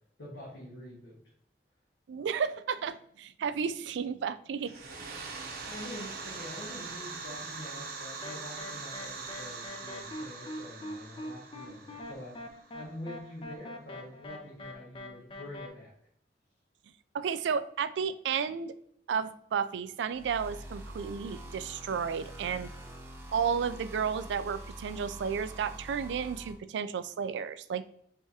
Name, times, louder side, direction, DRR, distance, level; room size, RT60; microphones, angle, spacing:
voice 1, 0.2-1.2 5.6-12.4 12.7-15.9, left 1 dB, 90° left, -7 dB, 1.3 m, -45 dB
voice 2, 2.1-4.7 17.1-18.7 19.1-22.7 23.3-27.8, right 6 dB, 80° right, 13 dB, 0.3 m, -32 dB
sound 1, 4.6-13.2, right 4 dB, 55° right, 0.8 m, -42 dB
sound 2, 8.2-15.7, left 1 dB, 30° left, 0.5 m, -43 dB
sound 3, 20.1-26.5, right 1 dB, 15° right, 0.8 m, -45 dB
4.8 x 3.4 x 2.7 m, 0.68 s
head